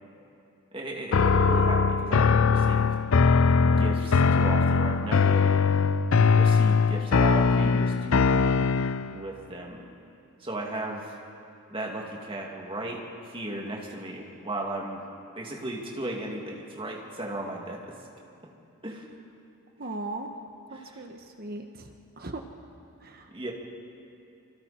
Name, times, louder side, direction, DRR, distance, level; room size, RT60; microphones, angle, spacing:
voice 1, 0.7-2.9 3.6-5.6 6.3-8.7 9.1-9.8 10.4-11.2 11.7-15.0 15.3-18.0 18.8-19.1 20.7-21.1 23.3-23.5, right 1 dB, 25° right, -1 dB, 2.5 m, -36 dB
sound 1, 1.1-9.2, left 5 dB, 70° left, 0.5 m, -21 dB
voice 2, 19.8-20.3 20.7-21.9 22.2-22.4 23.0-23.2, right 2 dB, 45° right, 5 dB, 1.1 m, -37 dB
26.5 x 25.0 x 4.4 m, 2.7 s
head